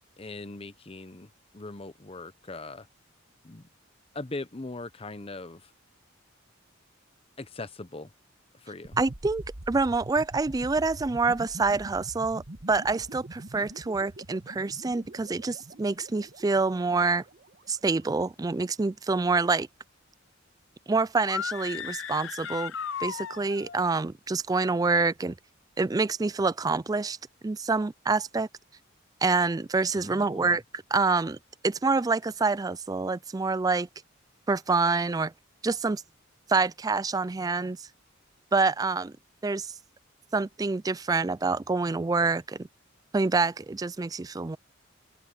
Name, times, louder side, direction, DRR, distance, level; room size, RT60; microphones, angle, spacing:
voice 1, 0.2-2.9 3.4-3.7 4.1-5.7 7.4-8.1 8.5-9.0 29.9-30.6, left 2 dB, 30° left, 0.9 m, -40 dB
sound 1, 8.8-17.7, right 1 dB, 50° right, 1.4 m, -44 dB
voice 2, 9.0-12.4 12.7-17.2 17.7-19.7 20.9-22.7 23.0-25.4 25.8-27.2 27.4-28.5 29.2-30.6 30.9-31.4 31.6-33.9 34.5-35.3 35.6-36.0 36.5-37.8 38.5-39.1 39.4-39.7 40.3-42.7 43.1-44.6, right 3 dB, 20° right, 0.3 m, -26 dB
sound 2, 21.2-23.8, left 7 dB, 65° left, 0.7 m, -35 dB
open air
head